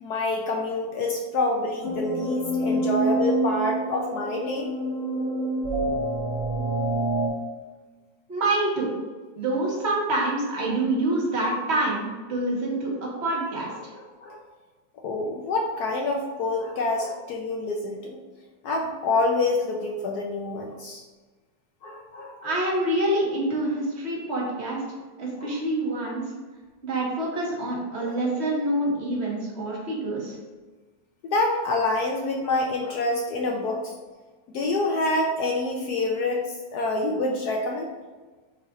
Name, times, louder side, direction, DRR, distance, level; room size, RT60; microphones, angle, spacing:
voice 1, 0.0-4.7 13.9-14.4 15.0-18.2 18.6-21.0 21.8-22.5 25.4-25.5 31.3-33.9 34.5-36.4 36.7-37.9, left 2 dB, 65° left, 1 dB, 1.1 m, -27 dB
sound 1, 1.8-7.3, right 1 dB, 40° left, 1.4 m, -27 dB
voice 2, 8.3-8.9 9.4-12.0 12.3-13.9 22.4-24.8 25.2-26.2 26.8-30.4, right 1 dB, 35° right, -4 dB, 1.8 m, -26 dB
9.0 x 3.3 x 3.7 m, 1.3 s
omnidirectional pair, 2.0 m